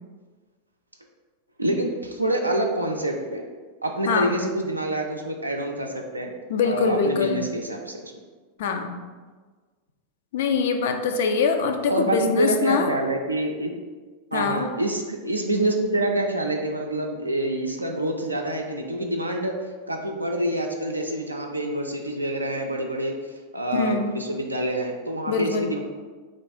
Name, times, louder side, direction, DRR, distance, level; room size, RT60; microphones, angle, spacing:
voice 1, 1.6-3.4 3.8-6.3 6.6-8.1 11.9-13.7 14.3-19.5 19.9-23.1 23.5-25.8, right 1 dB, 85° right, 2 dB, 0.3 m, -26 dB
voice 2, 4.1-4.4 6.5-7.5 8.6-9.0 10.3-12.9 14.3-14.7 23.7-24.1 25.3-25.7, left 5 dB, 55° left, 6 dB, 0.3 m, -23 dB
3.0 x 2.3 x 4.1 m, 1.4 s
figure-of-eight pair, 90°, 0 cm